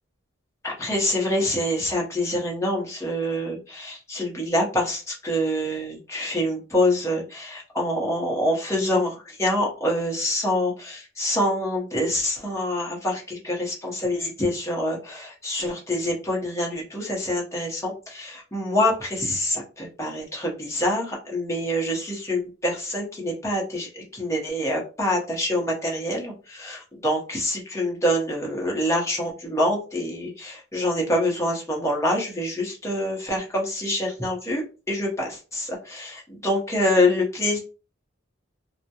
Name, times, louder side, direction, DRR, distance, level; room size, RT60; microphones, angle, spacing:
voice 1, 0.6-37.6, left 1 dB, 15° left, -2 dB, 0.7 m, -26 dB
2.2 x 2.1 x 2.7 m, 0.33 s
head